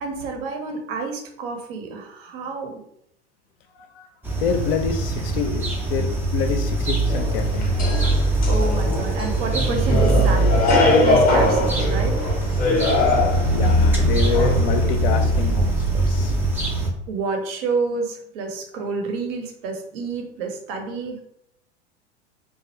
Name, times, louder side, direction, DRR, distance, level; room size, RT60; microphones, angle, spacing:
voice 1, 0.0-2.8 8.5-12.2 17.1-21.2, right 4 dB, 55° right, 3 dB, 0.7 m, -29 dB
sound 1, 4.2-16.9, right 2 dB, 5° right, 0.3 m, -22 dB
voice 2, 4.4-7.8 13.5-16.3, left 7 dB, 55° left, 6 dB, 0.5 m, -27 dB
sound 2, 7.1-15.3, left 2 dB, 25° left, 0.7 m, -23 dB
2.4 x 2.0 x 2.9 m, 0.72 s
figure-of-eight pair, 85°, 34 cm